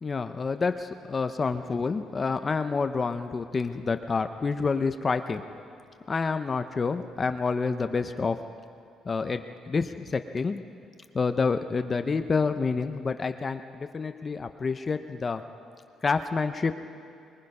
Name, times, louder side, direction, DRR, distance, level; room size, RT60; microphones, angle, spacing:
voice 1, 0.0-5.4 6.1-8.4 9.1-10.6 11.1-15.4 16.0-16.8, left 4 dB, 20° left, 8 dB, 0.5 m, -28 dB
23.5 x 21.0 x 5.4 m, 2.5 s
cardioid pair, 180°, 0 cm